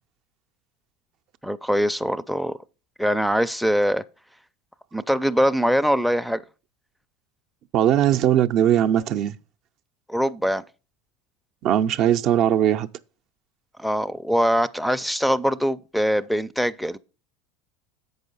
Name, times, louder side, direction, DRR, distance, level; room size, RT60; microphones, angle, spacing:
voice 1, 1.4-2.6 3.0-4.0 4.9-6.4 10.1-10.6 13.8-17.0, equal, ahead, 0.4 m, -22 dB
voice 2, 7.7-9.3 11.6-12.9, right 10 dB, 55° right, 0.5 m, -19 dB
7.8 x 5.5 x 5.3 m
supercardioid pair, 105°, 0 cm